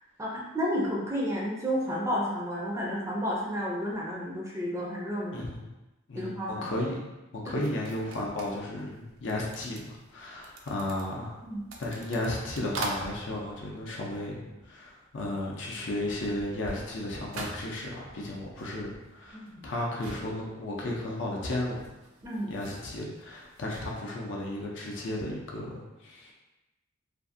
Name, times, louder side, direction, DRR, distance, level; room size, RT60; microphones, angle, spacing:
voice 1, 0.2-5.5 6.2-6.6 7.4-7.5 11.4-11.6 19.3-19.6 22.2-22.5, equal, 15° right, -4 dB, 0.4 m, -31 dB
voice 2, 5.3-5.7 6.1-11.4 11.8-21.9 22.5-26.3, left 1 dB, 65° left, -2 dB, 0.5 m, -34 dB
sound 1, 7.6-14.9 15.2-24.0, right 2 dB, 90° right, 0.4 m, -44 dB
2.6 x 2.4 x 2.5 m, 1.0 s
head